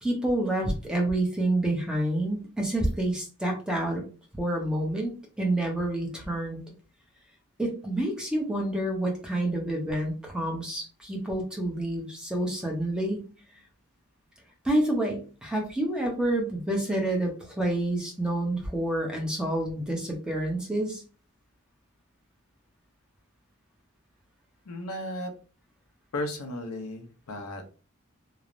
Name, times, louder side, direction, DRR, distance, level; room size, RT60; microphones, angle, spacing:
voice 1, 0.0-4.0 4.3-6.6 7.6-13.3 14.6-21.0, right 1 dB, 5° right, 0 dB, 0.5 m, -28 dB
voice 2, 24.6-25.3 26.1-27.7, left 1 dB, 85° left, 5 dB, 0.6 m, -35 dB
3.1 x 2.0 x 2.4 m, 0.36 s
head